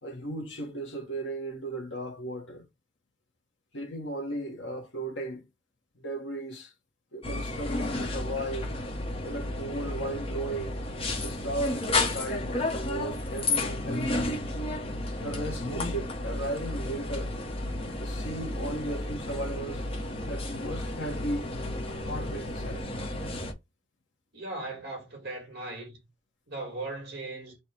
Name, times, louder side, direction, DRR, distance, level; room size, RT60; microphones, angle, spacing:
voice 1, 0.0-2.6 3.7-5.4 6.0-6.7 7.1-8.7 9.2-10.8 11.2-14.4 15.2-17.4 18.0-19.8 20.3-21.5 21.8-22.8, right 1 dB, 70° left, 1.1 m, -36 dB
sound 1, 7.2-23.5, left 2 dB, 30° left, 0.9 m, -32 dB
voice 2, 24.3-26.0 26.5-27.6, right 2 dB, 60° right, 1.9 m, -38 dB
4.2 x 2.3 x 4.4 m
head